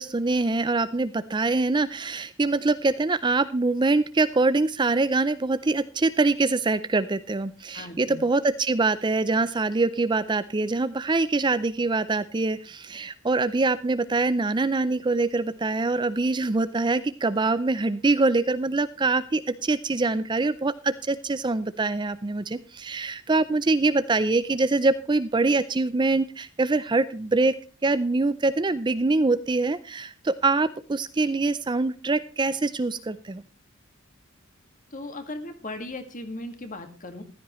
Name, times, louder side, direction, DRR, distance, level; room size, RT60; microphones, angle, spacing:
voice 1, 0.0-27.6 27.8-33.4, right 3 dB, 20° right, 14 dB, 0.5 m, -24 dB
voice 2, 7.7-8.2 34.9-37.2, left 2 dB, 40° left, 7 dB, 2.0 m, -37 dB
15.0 x 13.0 x 3.1 m, 0.37 s
head